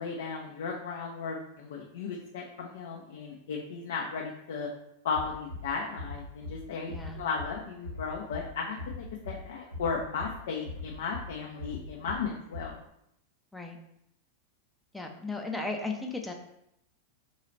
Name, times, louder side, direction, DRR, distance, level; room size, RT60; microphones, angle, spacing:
voice 1, 0.0-4.7 5.0-12.8, left 5 dB, 60° left, -1 dB, 0.4 m, -35 dB
Bass drum, 5.1-5.6 5.9-6.6 6.9-7.5 7.8-8.4 8.8-9.4 9.7-10.3 10.6-11.2 11.6-12.2 12.5-12.6, left 2 dB, 85° left, 1.0 m, -40 dB
voice 2, 6.9-7.2 13.5-13.8 14.9-16.3, left 3 dB, 5° left, 2 dB, 0.5 m, -35 dB
3.9 x 2.3 x 3.1 m, 0.78 s
figure-of-eight pair, 90°, 0 cm